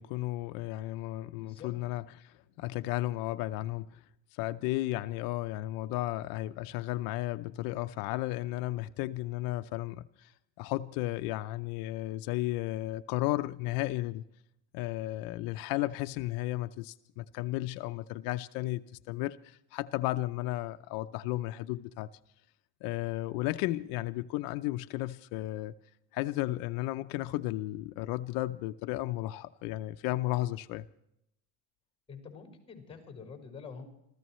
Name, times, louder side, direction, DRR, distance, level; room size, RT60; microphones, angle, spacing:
voice 1, 0.0-4.0 4.4-10.3 10.6-14.2 14.7-22.1 22.8-25.7 26.1-30.9, left 17 dB, 85° left, 0.6 m, -34 dB
voice 2, 1.4-1.7 32.1-33.8, left 6 dB, 15° left, 5.0 m, -46 dB
26.5 x 15.0 x 3.1 m
cardioid pair, 150°, 34 cm